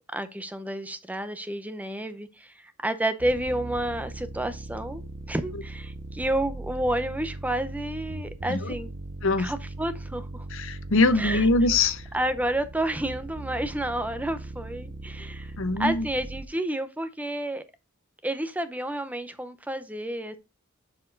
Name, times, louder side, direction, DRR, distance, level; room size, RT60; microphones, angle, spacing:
voice 1, 0.1-8.9 9.4-10.5 11.1-11.5 12.1-15.5 15.8-17.6 18.2-20.4, right 1 dB, 5° right, 0.7 m, -30 dB
sound 1, 3.2-16.5, right 2 dB, 65° right, 0.8 m, -39 dB
voice 2, 10.5-12.0 15.6-16.0, left 3 dB, 70° left, 0.9 m, -23 dB
6.9 x 6.0 x 3.9 m
head